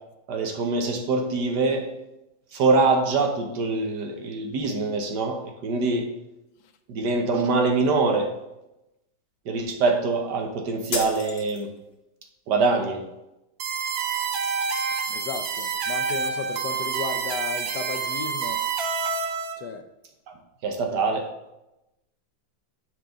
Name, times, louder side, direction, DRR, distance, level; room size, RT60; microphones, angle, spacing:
voice 1, 0.3-1.9 2.5-6.1 6.9-8.3 9.5-11.7 12.5-13.0 20.3-20.4 20.6-21.3, right 3 dB, 65° right, 3 dB, 1.5 m, -24 dB
sound 1, 10.9-11.9, left 2 dB, 40° left, 1.0 m, -33 dB
sound 2, 13.6-19.5, right 6 dB, 85° right, 1.5 m, -28 dB
voice 2, 15.1-18.6 19.6-19.9 20.9-21.0, left 6 dB, 70° left, 7 dB, 1.2 m, -34 dB
9.0 x 4.7 x 3.8 m, 0.91 s
omnidirectional pair, 2.1 m